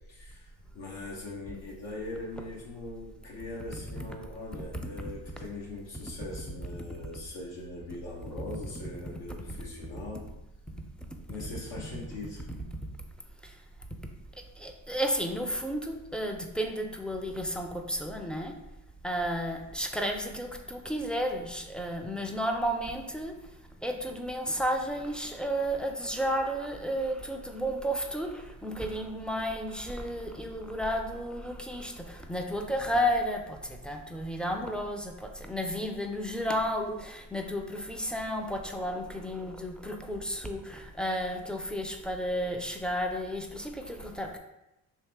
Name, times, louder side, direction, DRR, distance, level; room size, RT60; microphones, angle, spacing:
voice 1, 0.1-10.2 11.3-12.4, left 2 dB, 85° left, -4 dB, 0.9 m, -41 dB
voice 2, 14.6-18.5 19.0-23.3 23.8-44.4, equal, ahead, 2 dB, 0.3 m, -32 dB
3.0 x 2.8 x 3.3 m, 0.93 s
supercardioid pair, 65°, 41 cm